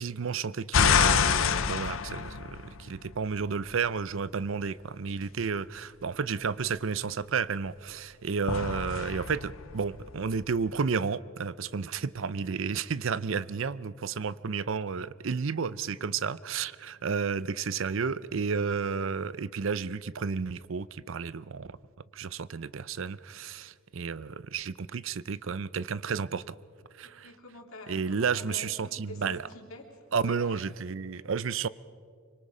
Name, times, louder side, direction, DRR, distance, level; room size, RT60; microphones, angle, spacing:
voice 1, 0.0-21.8 22.1-26.6 27.0-27.3 27.9-29.4 30.1-31.7, right 5 dB, 65° right, 0.5 m, -32 dB
sound 1, 0.7-3.1 8.5-10.5, left 7 dB, 70° left, 0.7 m, -26 dB
voice 2, 27.0-29.8 30.1-30.7, left 2 dB, 85° left, 3.1 m, -46 dB
25.5 x 24.5 x 5.0 m
head